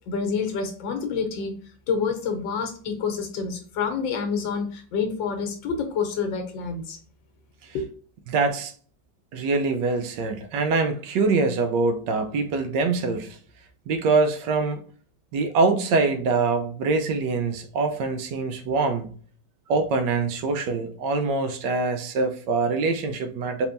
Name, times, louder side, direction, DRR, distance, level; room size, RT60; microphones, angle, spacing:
voice 1, 0.1-1.5 1.9-7.0 7.7-7.9, left 5 dB, 90° left, 1.7 m, -28 dB
voice 2, 8.3-8.7 9.3-13.4 13.9-14.8 15.3-19.1 19.7-23.7, right 3 dB, 75° right, 1.3 m, -24 dB
4.4 x 3.5 x 2.5 m
omnidirectional pair, 2.0 m